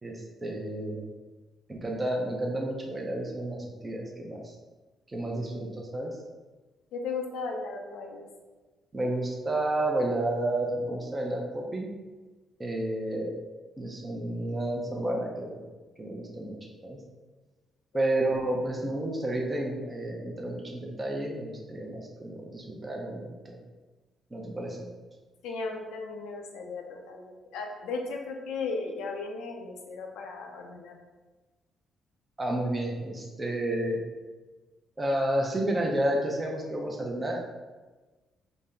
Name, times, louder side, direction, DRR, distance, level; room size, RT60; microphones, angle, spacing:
voice 1, 0.0-1.0 1.7-4.5 5.1-6.2 8.9-11.9 12.6-13.3 13.8-15.6 16.0-16.6 16.8-17.0 17.9-23.6 24.3-24.9 32.4-34.0 35.0-37.4, right 1 dB, 20° right, -1 dB, 0.6 m, -31 dB
voice 2, 6.9-8.2 25.4-30.9, left 4 dB, 90° left, 2 dB, 0.6 m, -36 dB
4.0 x 2.1 x 3.8 m, 1.2 s
cardioid pair, 90°, 0 cm